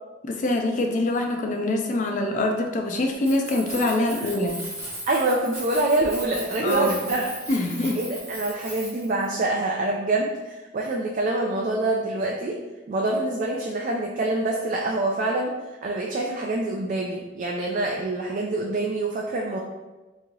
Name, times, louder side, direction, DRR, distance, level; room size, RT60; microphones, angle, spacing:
voice 1, 0.2-4.6 6.6-7.0 7.5-8.0, left 2 dB, 40° left, 3 dB, 0.4 m, -24 dB
Keys jangling, 3.1-9.3, right 1 dB, 15° right, 0.8 m, -37 dB
voice 2, 5.1-7.3 7.9-12.6 12.9-15.5 15.8-19.6, right 2 dB, 40° right, -1 dB, 0.3 m, -25 dB
3.0 x 2.7 x 3.8 m, 1.2 s
head